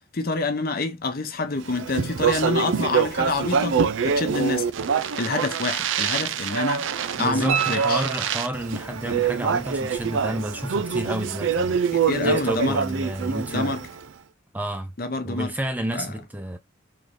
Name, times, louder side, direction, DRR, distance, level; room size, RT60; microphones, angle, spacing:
voice 1, 0.1-4.7 5.2-6.9 7.2-8.0 12.1-12.8 13.5-13.8 15.0-15.5 15.9-16.1, left 3 dB, 50° left, 0.7 m, -27 dB
Speech, 1.7-14.0, right 6 dB, 70° right, 0.4 m, -25 dB
voice 2, 7.2-13.8 14.5-14.9 15.2-16.6, right 1 dB, 10° right, 0.5 m, -30 dB
sound 1, 7.5-8.8 11.6-11.7, right 9 dB, 90° right, 2.0 m, -30 dB
3.7 x 2.7 x 3.2 m
head